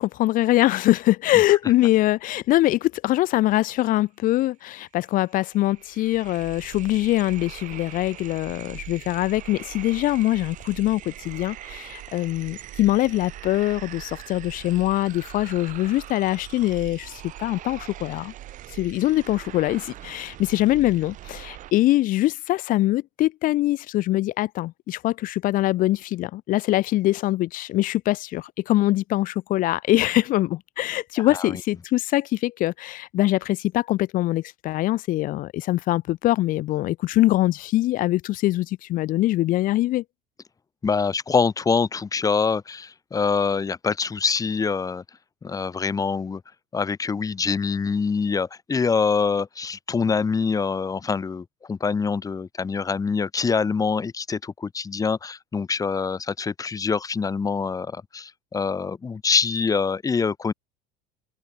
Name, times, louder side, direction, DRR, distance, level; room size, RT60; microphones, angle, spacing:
voice 1, 0.0-18.3 18.7-40.0, left 16 dB, 50° left, 1.6 m, -23 dB
sound 1, 4.7-4.8 5.0-21.7, right 13 dB, 45° right, 6.3 m, -41 dB
voice 2, 31.2-31.6 40.8-45.0 45.4-46.4 46.7-60.5, left 5 dB, 20° left, 5.4 m, -25 dB
open air
cardioid pair, 140°, 18 cm